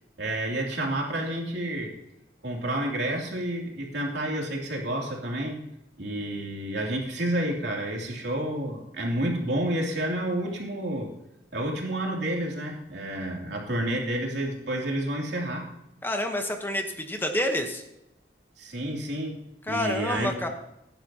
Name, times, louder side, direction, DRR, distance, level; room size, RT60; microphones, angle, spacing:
voice 1, 0.2-1.9 2.4-5.7 6.0-11.1 11.5-15.7 18.6-20.3, right 1 dB, 80° right, -1 dB, 3.0 m, -30 dB
voice 2, 16.0-17.8 19.7-20.5, left 1 dB, 10° left, 5 dB, 1.1 m, -28 dB
16.0 x 10.5 x 2.9 m, 0.86 s
head